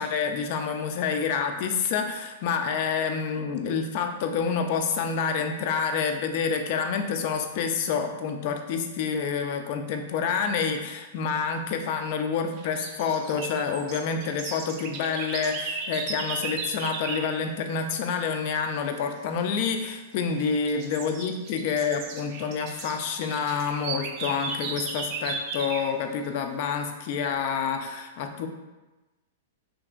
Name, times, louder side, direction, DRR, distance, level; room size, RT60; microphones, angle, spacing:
voice 1, 0.0-28.5, left 6 dB, 50° left, 6 dB, 0.3 m, -28 dB
sound 1, 12.6-17.3 19.5-19.9 20.4-25.9, right 4 dB, 45° right, 0.3 m, -36 dB
2.8 x 2.4 x 2.4 m, 1.1 s
hypercardioid pair, 110°, 0 cm